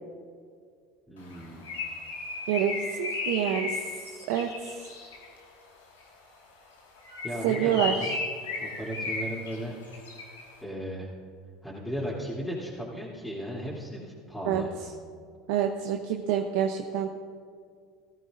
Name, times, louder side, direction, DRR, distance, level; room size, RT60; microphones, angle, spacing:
voice 1, 1.1-1.7 7.2-8.1 8.6-9.8 10.6-11.1 11.6-14.7, equal, 5° left, -8 dB, 3.2 m, -36 dB
Bird, 1.3-5.4 7.0-10.5, left 3 dB, 85° left, 1.9 m, -35 dB
voice 2, 2.5-3.8 4.3-4.8 7.4-8.1 14.5-14.6 15.5-17.1, right 9 dB, 70° right, 3 dB, 0.8 m, -27 dB
18.0 x 14.0 x 2.6 m, 2.2 s
hypercardioid pair, 75°, 0 cm